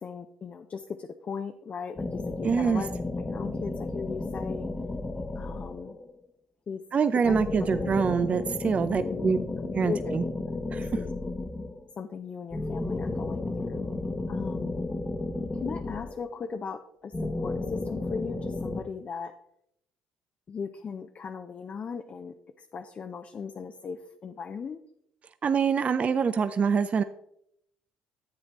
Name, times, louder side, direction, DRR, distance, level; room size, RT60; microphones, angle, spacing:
voice 1, 0.0-4.7 5.4-5.9 6.7-6.8 7.3-7.7 8.3-10.1 10.7-11.1 12.0-13.9 14.3-14.8 15.6-19.3 20.5-24.8, left 5 dB, 40° left, 7 dB, 0.6 m, -38 dB
sound 1, 1.9-6.1 7.2-11.9 12.5-16.5 17.1-18.8, left 2 dB, 20° left, 0.9 m, -33 dB
voice 2, 2.4-2.8 6.9-9.4 9.7-10.2 10.7-10.9 25.4-27.0, right 6 dB, 35° right, 12 dB, 0.4 m, -25 dB
10.5 x 7.9 x 3.0 m, 0.73 s
hypercardioid pair, 60°, 4 cm